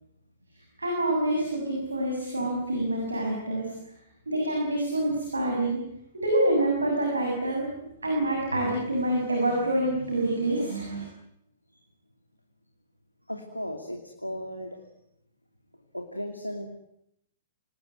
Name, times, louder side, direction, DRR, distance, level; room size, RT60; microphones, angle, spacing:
voice 1, 0.8-3.7 4.3-5.8 6.1-7.7 8.0-11.0, right 1 dB, 75° right, 1 dB, 7.0 m, -26 dB
voice 2, 13.3-14.8 15.9-16.7, equal, 90° left, 4 dB, 2.7 m, -36 dB
27.0 x 19.5 x 9.5 m, 0.79 s
figure-of-eight pair, 110°, 0 cm